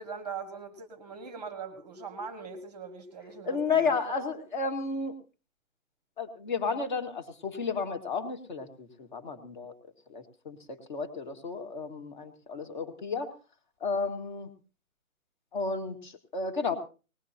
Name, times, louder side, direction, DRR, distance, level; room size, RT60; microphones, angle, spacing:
voice 1, 0.0-4.3, right 5 dB, 5° right, 8 dB, 1.4 m, -41 dB
voice 2, 3.5-5.2 6.2-13.3 13.8-14.5 15.5-16.8, left 4 dB, 35° left, 6 dB, 2.1 m, -32 dB
20.0 x 19.0 x 2.9 m, 0.34 s
hypercardioid pair, 165°, 43 cm